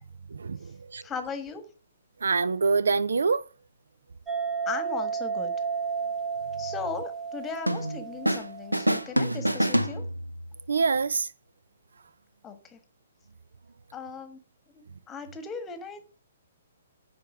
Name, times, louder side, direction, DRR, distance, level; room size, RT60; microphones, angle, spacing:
voice 1, 0.3-1.0 2.2-3.4 10.7-11.3, right 4 dB, 65° right, 0.4 m, -25 dB
voice 2, 1.0-1.7 4.6-5.5 6.6-10.0 12.4-12.8 13.9-14.4 14.7-16.2, left 5 dB, 15° left, 1.4 m, -38 dB
sound 1, 4.3-9.0, right 6 dB, 10° right, 1.0 m, -32 dB
sound 2, 7.7-8.5 8.7-10.5, right 1 dB, 90° right, 0.8 m, -26 dB
10.0 x 4.3 x 6.0 m
figure-of-eight pair, 120°, 0 cm